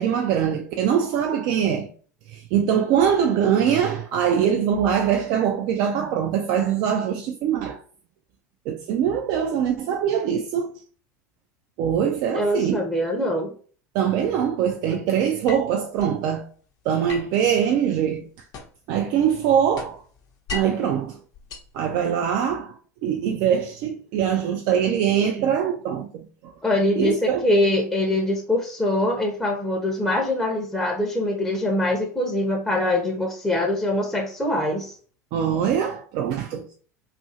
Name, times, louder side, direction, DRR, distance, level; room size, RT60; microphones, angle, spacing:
voice 1, 0.0-1.9 2.3-7.8 8.7-10.7 11.8-12.8 13.9-16.5 16.9-18.3 18.9-20.0 20.5-21.2 21.7-26.5 27.0-27.5 35.3-36.8, right 8 dB, 50° right, 0.4 m, -23 dB
voice 2, 12.3-13.5 26.6-34.9, left 1 dB, 5° left, 0.6 m, -23 dB
sound 1, 15.5-16.2 17.1-18.9 19.3-20.9 21.3-22.4, left 5 dB, 45° left, 0.6 m, -38 dB
2.6 x 2.4 x 2.7 m
hypercardioid pair, 80°, 9 cm